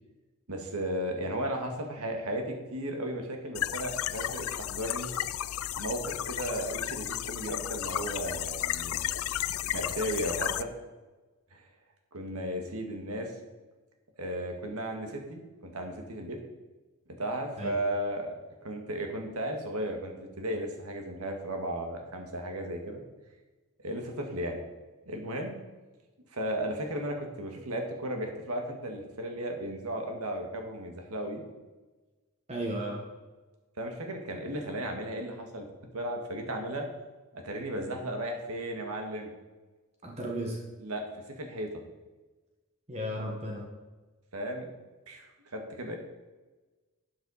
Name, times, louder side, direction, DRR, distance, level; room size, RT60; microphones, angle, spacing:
voice 1, 0.5-5.1 5.8-9.1 9.7-10.7 11.5-11.6 12.1-13.3 14.2-16.4 17.2-18.3 18.6-23.0 23.8-24.6 25.1-25.6 26.3-31.4 33.8-35.7 35.9-36.9 37.3-39.3 40.8-41.1 41.4-41.7 44.3-44.7 45.1-46.0, right 1 dB, 90° right, 3 dB, 1.8 m, -35 dB
sound 1, 3.5-10.6, left 12 dB, 75° left, 0.4 m, -33 dB
voice 2, 32.5-33.0 40.0-40.6 42.9-43.6, right 1 dB, 30° right, -1 dB, 1.5 m, -34 dB
12.0 x 7.8 x 4.2 m, 1.2 s
head